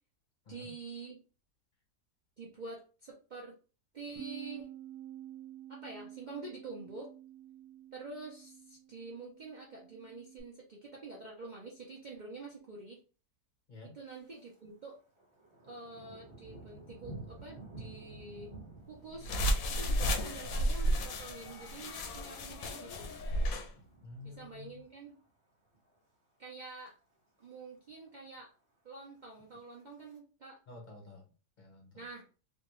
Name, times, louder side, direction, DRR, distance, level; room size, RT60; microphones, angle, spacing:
voice 1, 0.5-1.2 2.4-3.5 3.9-4.7 5.7-7.1 7.9-13.0 13.9-15.0 15.7-18.5 18.9-19.3 19.7-23.1 24.4-25.2 26.4-26.9 27.4-28.5 28.8-30.6 31.9-32.3, right 3 dB, 70° right, -3 dB, 0.4 m, -47 dB
Bass guitar, 4.2-10.4, right 11 dB, 90° right, 1.3 m, -50 dB
Thunder, 14.1-14.6 14.9-25.3 25.6-26.0 26.4-26.9 27.1-27.2 27.4-27.5 27.9-28.5 29.2-30.2, right 2 dB, 20° right, 0.9 m, -53 dB
sound 1, 19.2-23.7, equal, 70° left, 1.0 m, -33 dB
voice 2, 24.0-24.8 30.7-31.2 31.6-32.1, left 3 dB, 45° left, 1 dB, 0.6 m, -50 dB
3.2 x 2.2 x 3.0 m, 0.36 s
omnidirectional pair, 1.7 m